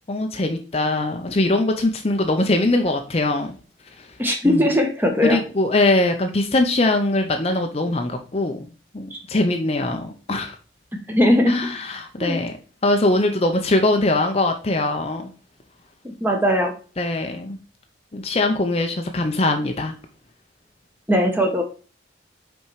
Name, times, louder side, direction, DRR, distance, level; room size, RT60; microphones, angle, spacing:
voice 1, 0.1-3.5 4.4-4.6 5.2-8.7 8.9-10.6 11.5-12.6 12.8-15.3 17.0-17.6 18.1-19.9, left 2 dB, 35° left, 5 dB, 0.6 m, -21 dB
voice 2, 4.2-5.4 11.1-11.5 12.2-12.4 16.2-16.7 21.1-21.6, equal, 10° right, 3 dB, 1.2 m, -19 dB
5.7 x 4.5 x 4.6 m, 0.36 s
head